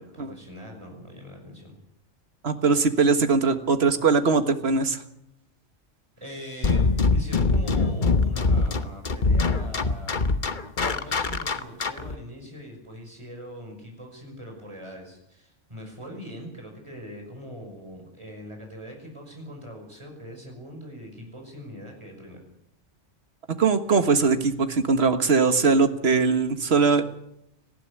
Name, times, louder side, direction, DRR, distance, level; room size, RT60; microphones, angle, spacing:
voice 1, 0.0-1.7 6.2-10.2 10.9-22.4, equal, 25° right, 2 dB, 5.8 m, -42 dB
voice 2, 2.4-5.0 23.6-27.0, right 4 dB, 60° right, 8 dB, 1.8 m, -21 dB
sound 1, 6.6-12.2, left 3 dB, 45° left, 1.2 m, -23 dB
19.0 x 15.0 x 10.0 m, 0.78 s
omnidirectional pair, 1.2 m